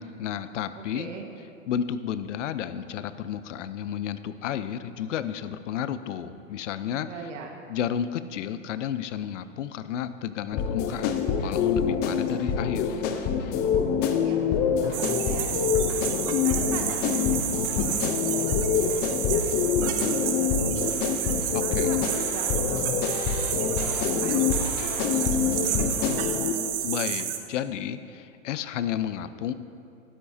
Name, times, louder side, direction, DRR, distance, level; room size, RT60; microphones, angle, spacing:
voice 1, 0.0-1.1 1.7-7.1 7.7-12.9 21.5-22.0 26.8-29.5, left 9 dB, 65° left, 13 dB, 0.7 m, -32 dB
voice 2, 0.7-1.3 7.1-7.6 13.7-16.0 16.4-21.1 21.5-26.2, right 4 dB, 65° right, 3 dB, 1.5 m, -43 dB
sound 1, 10.5-26.5, left 7 dB, 25° left, 0.6 m, -26 dB
sound 2, 14.9-27.4, right 10 dB, 45° right, 1.0 m, -30 dB
12.5 x 11.5 x 2.7 m, 2.5 s
hypercardioid pair, 125°, 40 cm